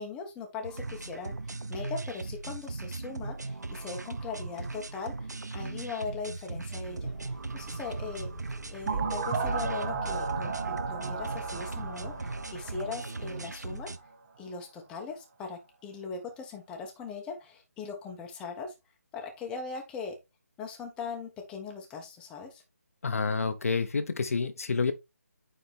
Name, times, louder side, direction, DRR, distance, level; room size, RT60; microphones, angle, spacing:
voice 1, 0.0-8.3 8.7-13.9 14.4-18.7 19.1-20.2 20.6-22.6, left 5 dB, 10° left, 1.1 m, -40 dB
sound 1, 0.6-14.0, right 3 dB, 85° right, 0.9 m, -38 dB
sound 2, 6.8-12.7, right 1 dB, 5° right, 2.5 m, -47 dB
sound 3, 8.9-13.6, right 4 dB, 35° right, 1.7 m, -34 dB
voice 2, 23.0-24.9, left 4 dB, 55° left, 1.0 m, -28 dB
9.1 x 3.9 x 3.5 m
figure-of-eight pair, 155°, 9 cm